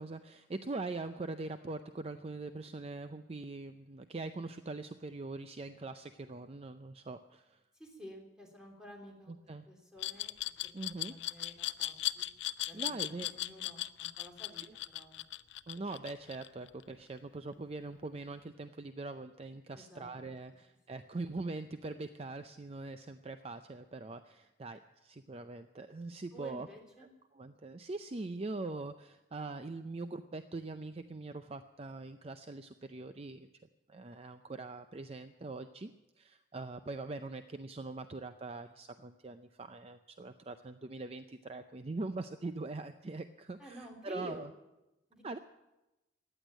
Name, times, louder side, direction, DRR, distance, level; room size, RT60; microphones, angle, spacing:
voice 1, 0.0-7.6 9.3-9.7 10.7-11.1 12.7-13.3 15.7-26.7 27.3-33.5 33.9-35.9 36.2-44.5 45.2-45.4, right 3 dB, 35° right, 9 dB, 0.5 m, -42 dB
voice 2, 7.7-9.4 9.7-10.3 10.6-12.3 12.6-14.6 14.9-15.3 19.7-20.1 26.3-27.1 43.6-44.5 45.1-45.2, equal, 5° right, -1 dB, 3.4 m, -51 dB
Glass, 10.0-16.8, left 14 dB, 85° left, 0.5 m, -37 dB
15.0 x 10.0 x 9.1 m, 0.99 s
head